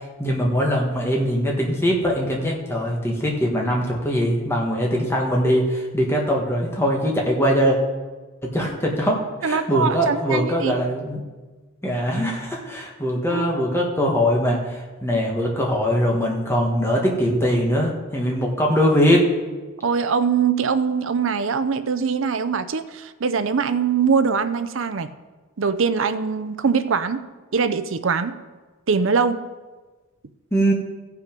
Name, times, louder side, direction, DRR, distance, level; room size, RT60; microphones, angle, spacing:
voice 1, 0.2-7.8 8.4-11.2 11.8-19.2 30.5-30.7, equal, 10° left, -1 dB, 1.5 m, -21 dB
voice 2, 9.4-10.7 13.3-13.5 19.8-25.1 25.6-27.2 27.5-28.4 28.9-29.5, right 5 dB, 60° right, 12 dB, 0.5 m, -22 dB
15.5 x 5.8 x 5.2 m, 1.3 s
head